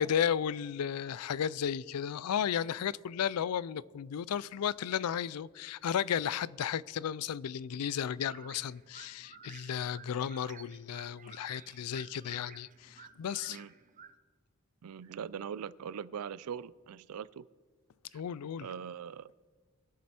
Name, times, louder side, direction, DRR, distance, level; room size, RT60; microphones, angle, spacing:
voice 1, 0.0-13.6 18.1-18.7, left 8 dB, 85° left, 0.4 m, -34 dB
sound 1, 8.1-14.1, right 6 dB, 35° right, 0.7 m, -54 dB
voice 2, 14.8-17.5 18.6-19.5, right 7 dB, 80° right, 0.4 m, -41 dB
22.5 x 7.5 x 4.3 m
head